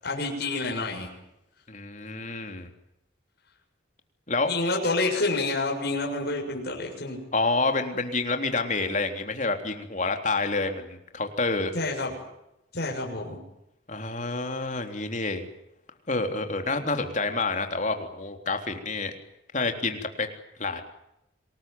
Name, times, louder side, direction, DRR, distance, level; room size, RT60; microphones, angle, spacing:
voice 1, 0.0-1.1 4.5-7.2 11.7-12.1 12.7-13.4, left 2 dB, 55° left, 1 dB, 6.9 m, -28 dB
voice 2, 1.7-2.7 4.3-4.5 7.3-11.7 13.9-15.5 16.1-19.1 19.5-20.3 20.6-20.8, left 3 dB, 40° left, 5 dB, 3.5 m, -28 dB
27.0 x 20.0 x 9.4 m, 0.86 s
head